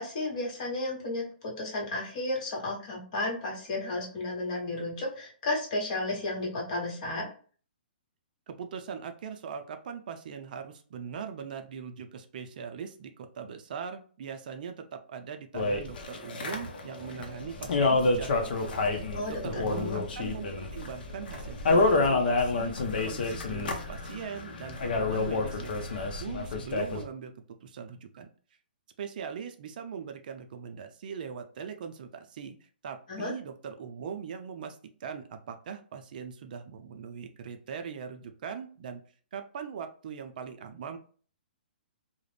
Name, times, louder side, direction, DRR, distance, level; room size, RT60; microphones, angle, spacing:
voice 1, 0.0-7.3 19.1-20.0 33.1-33.3, left 2 dB, 45° left, -1 dB, 1.1 m, -33 dB
voice 2, 8.5-28.3 29.0-39.0 39.3-41.0, right 7 dB, 55° right, 7 dB, 0.4 m, -41 dB
sound 1, 15.5-27.0, left 3 dB, 65° left, 0.6 m, -29 dB
2.4 x 2.0 x 3.2 m, 0.41 s
hypercardioid pair, 145°, 6 cm